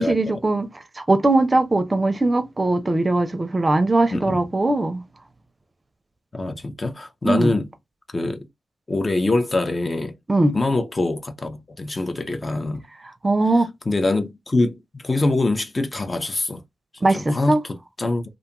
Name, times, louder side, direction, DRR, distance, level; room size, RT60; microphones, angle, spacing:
voice 1, 0.0-5.0 7.2-7.5 10.3-10.6 13.2-13.7 17.0-17.6, right 2 dB, 30° right, 0.5 m, -20 dB
voice 2, 6.3-7.7 8.1-8.5 8.9-10.1 10.5-12.8 13.9-16.6 17.1-18.2, left 2 dB, 35° left, 0.5 m, -24 dB
2.5 x 2.3 x 2.8 m
cardioid pair, 55°, 0 cm